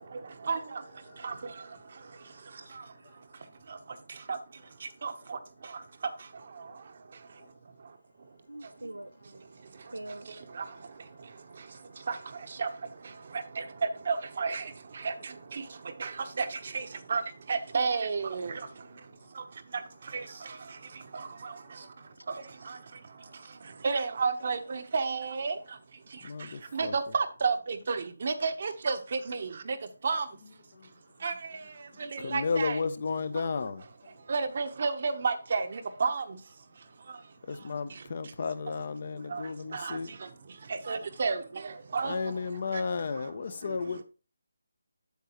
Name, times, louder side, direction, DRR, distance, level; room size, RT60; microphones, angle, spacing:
voice 1, 0.4-0.8 1.2-1.3 4.3-4.4 5.0-5.4 10.6-10.7 12.1-12.2 12.6-12.7 13.6-13.7 14.1-14.7 15.0-15.6 16.0-16.1 16.4-17.2 17.5-18.6 20.1-20.2 21.1-21.5 22.7-22.8 23.8-25.5 26.7-29.8 30.0-30.2 31.2-31.3 32.1-32.8 34.3-36.2 39.3-39.4 39.7-40.0 40.9-42.2, right 4 dB, 45° right, 0.9 m, -31 dB
voice 2, 1.1-1.4 21.2-21.3 26.2-26.9 30.7-30.9 32.2-33.8 37.5-40.1 42.0-44.0, left 4 dB, 45° left, 0.7 m, -33 dB
voice 3, 8.5-9.7 9.9-10.3 43.6-44.0, right 1 dB, 90° right, 0.4 m, -44 dB
8.2 x 6.8 x 3.0 m
figure-of-eight pair, 155°, 0 cm